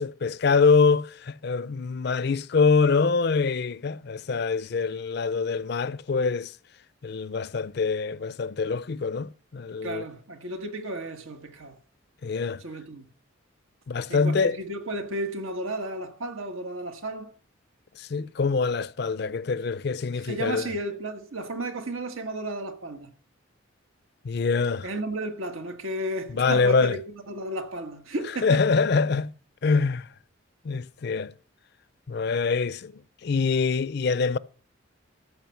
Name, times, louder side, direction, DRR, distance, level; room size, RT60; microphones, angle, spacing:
voice 1, 0.0-6.5 7.0-10.1 12.2-12.6 13.9-14.6 18.0-20.7 24.2-24.9 26.3-27.0 28.4-29.3 29.6-30.1 30.6-31.3 32.1-34.4, left 4 dB, 50° left, 0.4 m, -24 dB
voice 2, 9.8-11.8 12.6-13.0 14.1-17.3 20.2-23.1 24.8-28.6, right 1 dB, 85° right, 1.5 m, -33 dB
14.0 x 6.1 x 5.8 m
head